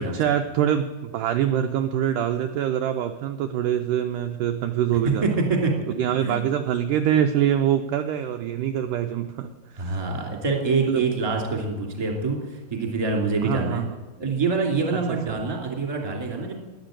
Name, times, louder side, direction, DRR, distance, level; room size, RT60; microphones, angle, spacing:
voice 1, 0.0-5.3 5.9-10.0 10.8-11.0 13.4-13.9 15.1-15.4, right 10 dB, 80° right, 6 dB, 2.0 m, -24 dB
voice 2, 5.2-5.7 6.2-6.4 9.8-13.8 14.2-16.6, right 4 dB, 10° right, 1 dB, 2.1 m, -25 dB
11.5 x 10.5 x 9.0 m, 1.2 s
omnidirectional pair, 4.2 m